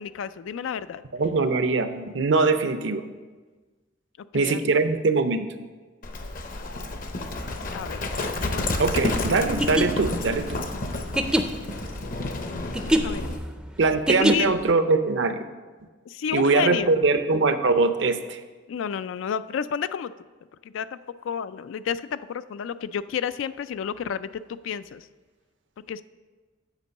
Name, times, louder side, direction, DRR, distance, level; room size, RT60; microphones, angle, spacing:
voice 1, 0.0-1.0 4.3-4.6 7.7-8.0 13.0-13.3 14.3-14.5 16.1-16.9 18.7-20.1 20.6-21.0 21.2-25.1 25.9-26.0, left 7 dB, 80° left, 14 dB, 0.3 m, -30 dB
voice 2, 1.1-3.0 4.3-5.5 8.8-10.6 13.8-15.4 16.3-18.4, right 3 dB, 65° right, 10 dB, 0.6 m, -22 dB
Livestock farm animals working animals, 6.0-13.4, left 2 dB, 45° left, 0.7 m, -30 dB
sound 1, 9.6-14.7, equal, 5° right, 0.4 m, -25 dB
8.2 x 5.2 x 6.5 m, 1.3 s
head